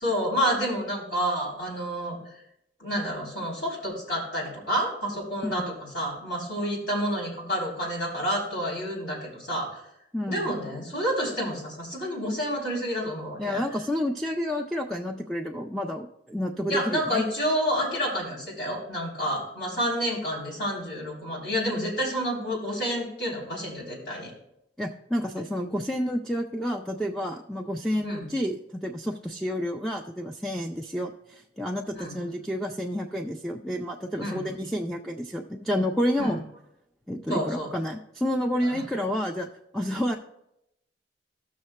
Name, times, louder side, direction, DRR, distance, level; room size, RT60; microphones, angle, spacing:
voice 1, 0.0-2.2 2.8-9.8 10.3-13.6 16.7-24.3 28.0-28.3 31.9-32.2 34.2-34.4 36.2-36.3 37.3-37.7 38.6-38.8, equal, 60° left, -5 dB, 3.5 m, -29 dB
voice 2, 10.1-10.5 13.4-17.2 24.8-36.4 37.1-39.5 39.7-40.2, equal, ahead, 2 dB, 0.4 m, -30 dB
15.5 x 6.4 x 2.2 m, 0.80 s
head